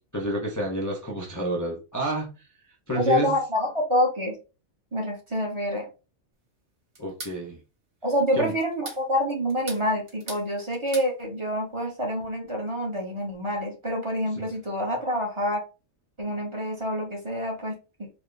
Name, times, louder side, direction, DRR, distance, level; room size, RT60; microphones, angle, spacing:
voice 1, 0.0-2.4 2.9-3.3 7.0-7.6 8.3-8.5 14.4-14.5, equal, 20° left, -3 dB, 0.6 m, -29 dB
voice 2, 2.9-4.4 4.9-5.9 8.0-15.6 16.2-18.1, equal, 25° right, -1 dB, 1.0 m, -27 dB
sound 1, 7.0-7.4 8.6-9.0 9.5-10.5 10.7-11.1, right 2 dB, 60° right, 1.8 m, -39 dB
4.3 x 2.2 x 3.3 m, 0.31 s
omnidirectional pair, 1.4 m